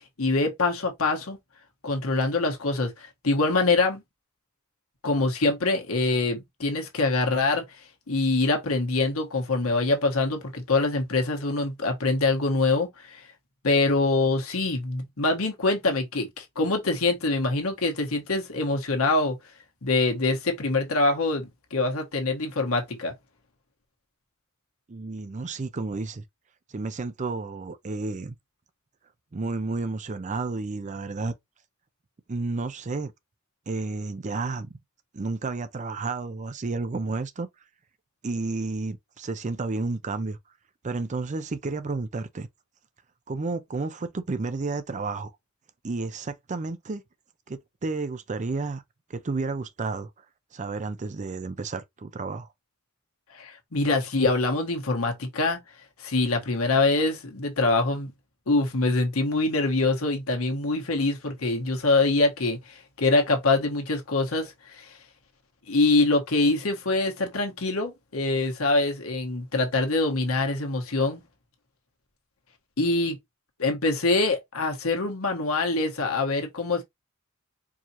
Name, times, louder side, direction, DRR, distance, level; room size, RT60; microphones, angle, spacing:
voice 1, 0.2-1.4 1.8-4.0 5.0-7.6 8.1-13.2 13.6-19.4 19.8-23.1 53.3-55.6 56.0-58.1 58.5-64.9 65.7-71.2 72.8-73.2 73.6-76.8, left 3 dB, 85° left, 1.3 m, -24 dB
voice 2, 24.9-26.2 26.7-28.3 29.3-31.3 32.3-33.1 33.7-34.7 35.1-37.5 38.2-40.4 40.8-42.5 43.3-45.3 45.8-47.0 47.5-48.8 49.1-50.1 50.5-52.5, right 3 dB, 35° right, 0.5 m, -31 dB
4.7 x 2.8 x 2.8 m
head